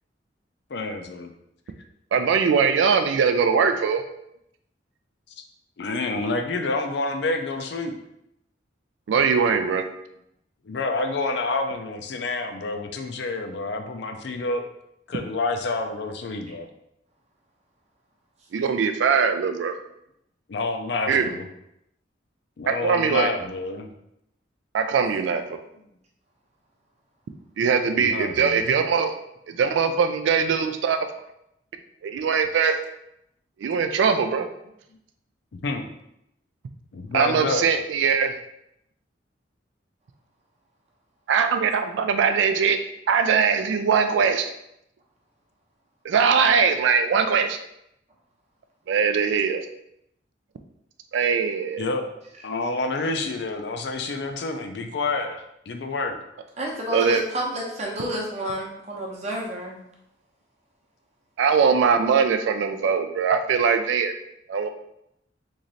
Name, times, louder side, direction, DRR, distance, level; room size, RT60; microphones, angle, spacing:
voice 1, 0.7-1.3 5.8-7.9 10.7-14.6 15.1-16.7 20.5-21.4 22.6-23.9 28.0-28.6 35.5-35.9 36.9-37.7 51.8-52.1 52.4-56.2, left 3 dB, 60° left, 5 dB, 0.4 m, -28 dB
voice 2, 2.1-4.0 9.1-9.8 18.5-19.7 21.1-21.3 22.7-23.3 24.7-25.4 27.6-29.1 29.5-31.1 32.0-32.8 33.6-34.5 37.1-38.4 41.3-42.8 43.1-44.5 46.0-47.6 48.9-49.7 51.1-51.9 56.9-57.2 61.4-64.1 64.5-64.7, right 6 dB, 75° right, 7 dB, 0.3 m, -21 dB
voice 3, 56.6-59.9, equal, 35° right, -2 dB, 0.7 m, -30 dB
3.1 x 2.5 x 3.9 m, 0.79 s
head